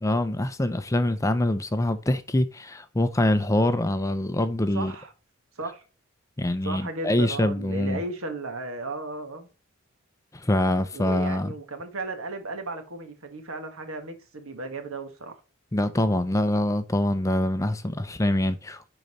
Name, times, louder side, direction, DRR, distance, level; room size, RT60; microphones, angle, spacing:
voice 1, 0.0-4.9 6.4-8.0 10.3-11.5 15.7-18.9, left 1 dB, 15° left, 0.5 m, -24 dB
voice 2, 4.7-5.1 5.5-5.8 6.6-9.5 10.9-15.4, right 3 dB, 65° right, 1.6 m, -35 dB
10.5 x 4.0 x 3.1 m
head